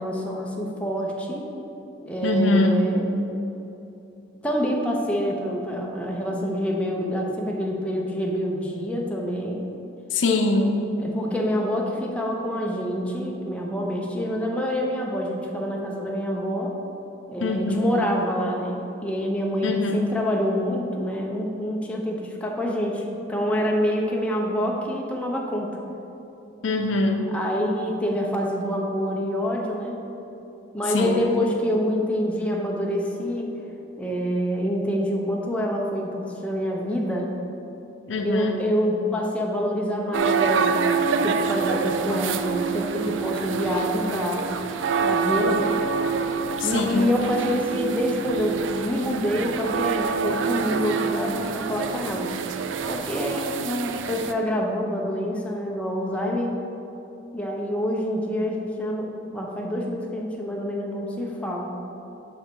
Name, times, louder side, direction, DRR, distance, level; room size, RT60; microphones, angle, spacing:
voice 1, 0.0-1.5 2.0-3.1 4.4-9.7 11.0-16.7 17.3-25.8 27.3-30.0 30.7-33.5 34.0-37.3 38.2-44.5 45.0-45.8 46.6-52.3 52.9-56.5 57.3-61.7, equal, 5° left, -1 dB, 0.7 m, -26 dB
voice 2, 2.2-2.8 10.1-10.7 17.4-18.0 19.6-20.0 26.6-27.3 30.9-31.2 38.1-38.5 46.6-47.1, left 2 dB, 75° left, 3 dB, 0.6 m, -23 dB
sound 1, 40.1-54.3, right 5 dB, 70° right, 0.4 m, -26 dB
6.0 x 5.6 x 4.6 m, 2.9 s
head